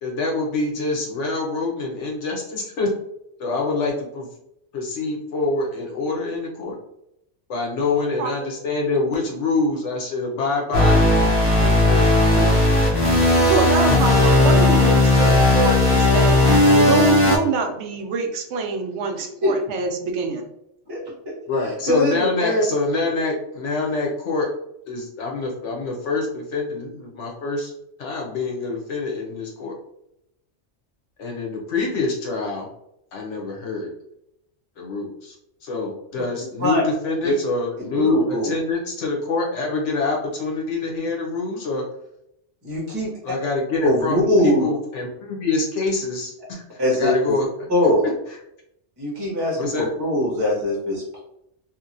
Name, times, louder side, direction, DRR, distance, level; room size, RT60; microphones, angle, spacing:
voice 1, 0.0-2.9 3.4-4.3 4.7-6.7 7.5-11.0 11.6-12.5 21.4-24.5 24.9-27.7 28.0-29.7 31.2-32.7 33.1-33.9 34.8-35.3 35.6-41.8 43.2-47.5 48.3-48.4 49.5-49.9, left 3 dB, 80° left, -1 dB, 1.1 m, -25 dB
sound 1, 10.7-17.4, left 2 dB, 55° left, 0.9 m, -16 dB
voice 2, 13.4-16.4 16.7-20.5, right 4 dB, 75° right, 4 dB, 0.8 m, -25 dB
voice 3, 21.9-22.6 36.6-36.8 37.2-37.3 38.0-38.5 42.6-43.1 43.8-44.7 46.8-47.3 47.7-48.1 49.0-51.2, left 1 dB, 20° right, -5 dB, 1.0 m, -21 dB
2.9 x 2.6 x 2.5 m, 0.80 s
omnidirectional pair, 1.2 m